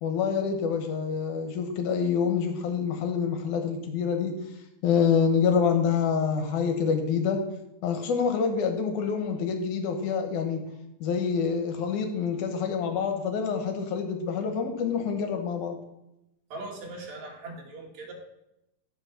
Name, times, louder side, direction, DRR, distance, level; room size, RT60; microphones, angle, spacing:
voice 1, 0.0-4.4 4.8-7.4 7.8-10.7 11.0-15.8, left 6 dB, 70° left, 5 dB, 2.5 m, -26 dB
voice 2, 16.5-18.1, right 2 dB, 60° right, 0 dB, 2.9 m, -40 dB
9.8 x 5.7 x 5.8 m, 0.87 s
omnidirectional pair, 3.8 m